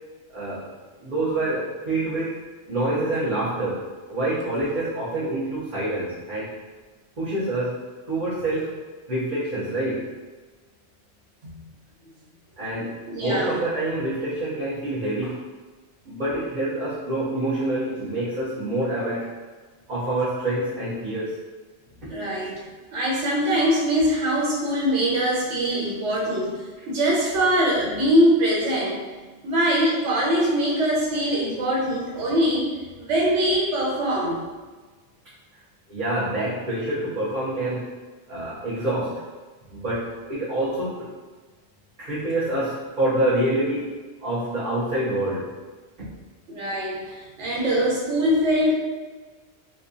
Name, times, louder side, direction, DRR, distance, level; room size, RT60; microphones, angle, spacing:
voice 1, 0.3-0.7 1.0-2.3 2.7-6.5 7.2-7.8 8.1-8.7 9.1-10.1 12.6-15.4 16.0-19.3 19.9-21.3 35.9-37.9 38.3-39.2 39.7-41.1 42.0-43.9 44.2-45.5 46.0-46.1, right 1 dB, 45° right, -11 dB, 0.9 m, -26 dB
voice 2, 13.1-13.5 22.1-22.6 22.9-26.6 26.9-29.0 29.4-32.7 33.0-34.4 46.5-48.7, equal, 90° right, -4 dB, 1.2 m, -22 dB
4.0 x 2.3 x 2.6 m, 1.4 s
omnidirectional pair, 1.2 m